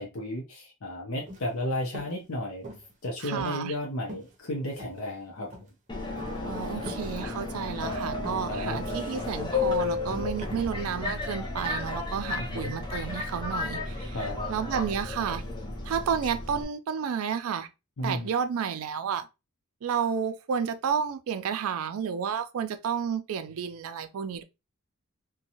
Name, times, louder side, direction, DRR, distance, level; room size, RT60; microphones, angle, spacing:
voice 1, 0.0-2.6 3.0-5.7 8.5-8.8 12.4-12.7 14.1-14.5 18.0-18.3, left 1 dB, 70° left, 0.6 m, -33 dB
sound 1, 1.2-1.5 1.9-2.2 2.6-3.0 3.4-3.8 4.1-4.3 4.8-5.2 5.5-5.7 6.2-6.4 6.9-7.1 7.5-7.8 8.2-8.5 8.9-9.1 9.6-9.9 10.4-10.5, equal, 35° right, 0.7 m, -43 dB
voice 2, 3.2-3.7 6.4-14.2 14.5-15.4 15.8-17.7 18.0-19.3 19.8-24.4, right 7 dB, 85° right, 0.4 m, -31 dB
Subway metro underground, 5.9-16.6, left 3 dB, 20° left, 0.5 m, -33 dB
2.6 x 2.2 x 2.7 m
head